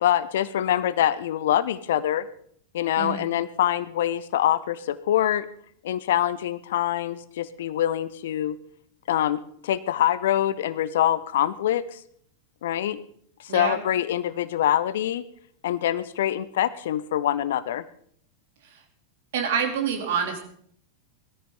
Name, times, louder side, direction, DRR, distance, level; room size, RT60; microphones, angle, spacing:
voice 1, 0.0-2.3 2.7-5.5 5.8-8.6 9.1-12.0 12.6-13.0 13.4-15.2 15.6-17.8, left 11 dB, 60° left, 17 dB, 0.7 m, -25 dB
voice 2, 3.0-3.3 13.5-13.8 18.6-18.8 19.3-20.4, right 7 dB, 55° right, 4 dB, 2.7 m, -27 dB
19.5 x 14.0 x 3.7 m, 0.63 s
figure-of-eight pair, 90°, 0 cm